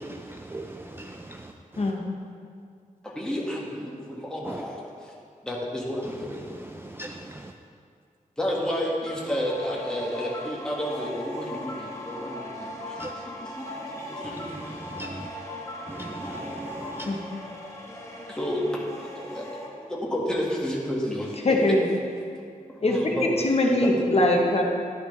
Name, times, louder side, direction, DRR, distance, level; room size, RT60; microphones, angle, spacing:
voice 1, 0.2-1.5 4.4-4.6 6.7-7.5 13.0-13.1 14.3-15.3 15.9-17.2, right 2 dB, 15° right, 3 dB, 0.4 m, -39 dB
voice 2, 3.0-4.7 5.4-6.3 8.4-14.5 18.3-18.7 19.2-19.5 19.9-21.3 22.8-23.4 23.7-23.9, equal, 5° left, -4 dB, 1.9 m, -31 dB
sound 1, 9.0-19.7, left 1 dB, 20° left, 1.5 m, -39 dB
voice 3, 21.4-21.9 22.8-24.6, left 1 dB, 50° left, 0 dB, 1.1 m, -22 dB
11.5 x 11.0 x 3.3 m, 2.2 s
wide cardioid pair, 140°, 14 cm